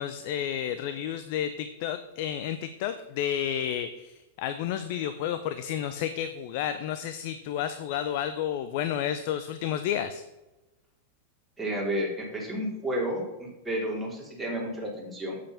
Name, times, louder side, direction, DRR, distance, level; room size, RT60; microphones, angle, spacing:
voice 1, 0.0-10.2, left 10 dB, 50° left, 10 dB, 0.6 m, -31 dB
voice 2, 11.6-15.4, equal, 5° right, -4 dB, 3.6 m, -31 dB
8.7 x 7.7 x 5.8 m, 1.0 s
figure-of-eight pair, 90°, 0 cm